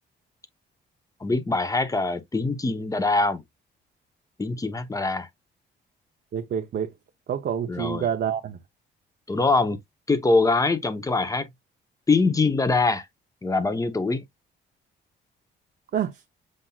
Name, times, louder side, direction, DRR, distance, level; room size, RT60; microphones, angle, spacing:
voice 1, 1.2-3.4 4.4-5.3 7.7-8.1 9.3-9.8 10.1-11.5 12.1-13.0 13.4-14.2, left 3 dB, 15° left, 0.9 m, -23 dB
voice 2, 6.3-6.9 7.3-8.6 15.9-16.2, right 9 dB, 55° right, 0.7 m, -27 dB
7.5 x 2.7 x 2.3 m
cardioid pair, 90°, 20 cm